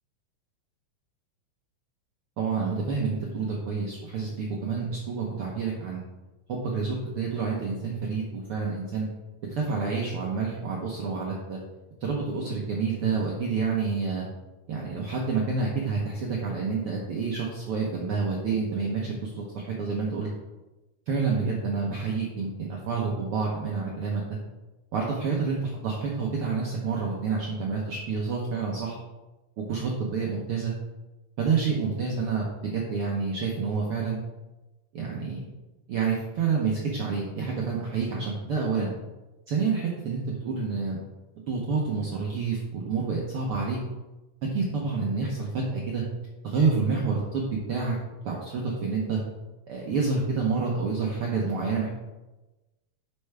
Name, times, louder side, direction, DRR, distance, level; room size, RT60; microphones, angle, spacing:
voice 1, 2.4-6.0 6.5-9.1 9.5-11.6 12.0-14.2 14.7-20.3 21.1-24.4 24.9-29.0 29.7-30.7 31.4-32.4 32.7-34.2 34.9-35.5 35.9-38.9 39.5-41.0 41.3-43.8 44.5-46.0 46.4-48.0 48.2-49.2 49.7-51.9, right 4 dB, 80° right, -2 dB, 1.2 m, -28 dB
10.0 x 5.6 x 3.5 m, 1.1 s
omnidirectional pair, 4.0 m